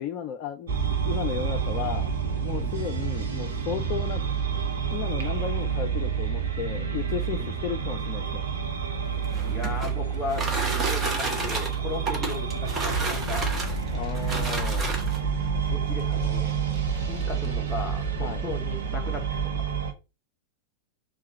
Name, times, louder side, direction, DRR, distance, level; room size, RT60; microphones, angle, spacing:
voice 1, 0.0-2.1 2.4-4.2 4.9-8.5 13.9-14.9 18.2-18.4, left 9 dB, 40° left, 0.4 m, -34 dB
sound 1, 0.7-19.9, right 6 dB, 65° right, 1.0 m, -28 dB
voice 2, 2.4-2.9 3.7-3.9 7.3-7.5 9.1-10.5 10.8-13.5 13.8-14.0 15.7-16.6 17.0-19.5, left 3 dB, 10° left, 1.3 m, -36 dB
sound 2, 9.1-15.4 16.2-16.3 16.7-16.8 17.1-17.5, right 3 dB, 20° right, 1.1 m, -31 dB
3.6 x 2.5 x 4.2 m
figure-of-eight pair, 90°, 0 cm